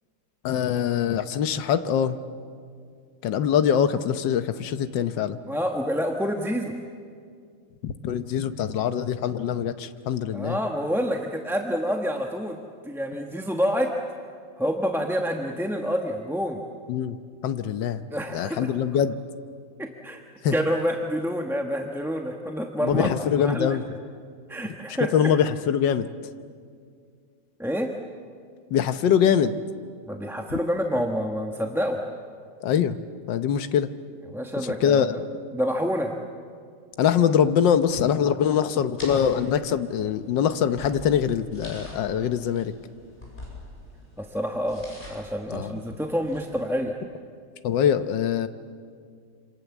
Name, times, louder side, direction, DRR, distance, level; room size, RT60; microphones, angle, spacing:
voice 1, 0.4-2.2 3.2-5.4 7.8-10.6 16.9-17.2 17.4-18.0 18.3-19.2 20.4-20.5 22.8-23.8 25.1-26.1 28.7-29.6 30.5-30.6 32.6-33.9 34.6-35.2 37.0-42.7 45.5-45.8 47.6-48.5, left 8 dB, 80° left, 10 dB, 1.6 m, -23 dB
voice 2, 5.5-6.7 10.3-12.6 12.8-14.0 14.6-16.6 18.1-18.7 19.8-20.2 20.5-23.1 23.4-23.8 24.5-25.4 27.6-27.9 30.1-32.0 34.3-35.2 35.5-36.1 44.2-46.9, equal, ahead, 2 dB, 1.0 m, -27 dB
sound 1, 39.0-46.7, left 1 dB, 25° left, 8.1 m, -45 dB
27.0 x 27.0 x 7.2 m, 2.2 s
omnidirectional pair, 1.9 m